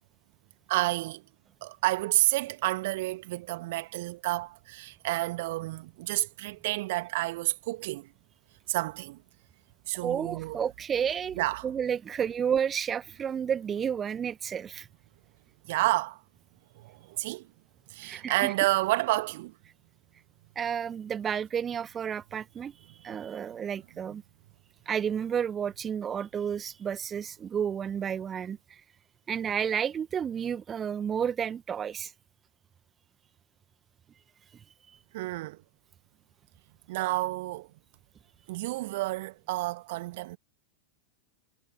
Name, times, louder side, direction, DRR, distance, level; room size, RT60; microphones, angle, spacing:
voice 1, 0.7-1.2 1.6-8.1 8.7-9.2 9.9-10.6 11.4-11.7 15.7-16.2 16.8-17.5 17.9-19.5 35.1-35.6 36.9-37.7 38.5-40.4, right 19 dB, 50° right, 2.0 m, -30 dB
voice 2, 10.0-11.4 11.6-14.9 18.0-18.5 20.6-22.7 23.0-24.2 24.9-28.8 29.3-32.1, right 8 dB, 25° right, 1.7 m, -31 dB
figure-of-eight pair, 90°, 0 cm